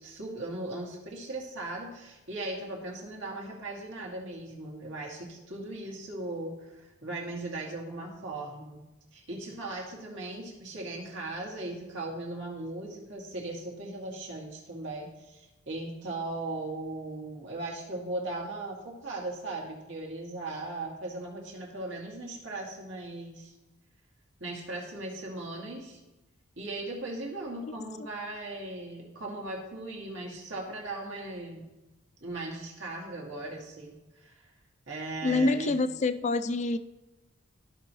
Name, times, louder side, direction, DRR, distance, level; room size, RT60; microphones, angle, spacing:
voice 1, 0.0-8.8 9.1-23.5 24.4-26.0 26.6-31.6 32.2-34.4 34.9-35.7, right 2 dB, 65° right, 2.2 m, -38 dB
voice 2, 35.2-36.8, left 3 dB, 35° left, 0.3 m, -26 dB
14.0 x 5.6 x 3.1 m
head